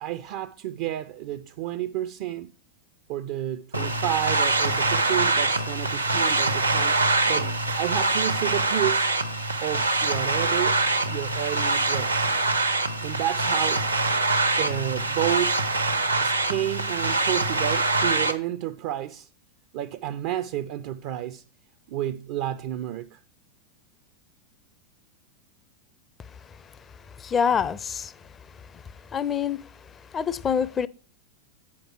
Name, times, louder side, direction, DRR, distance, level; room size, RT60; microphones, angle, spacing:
voice 1, 0.0-2.5 3.1-7.0 7.3-7.5 7.8-9.1 9.6-10.8 11.1-12.1 13.0-13.9 14.6-15.6 16.2-19.3 19.7-21.4 21.9-23.2, right 13 dB, 50° right, 0.4 m, -30 dB
sound 1, 3.7-18.3, right 2 dB, 85° right, 0.9 m, -24 dB
voice 2, 27.2-28.1 29.1-29.6 30.1-30.9, left 7 dB, 20° left, 0.4 m, -25 dB
8.5 x 5.0 x 6.0 m
figure-of-eight pair, 90°, 0 cm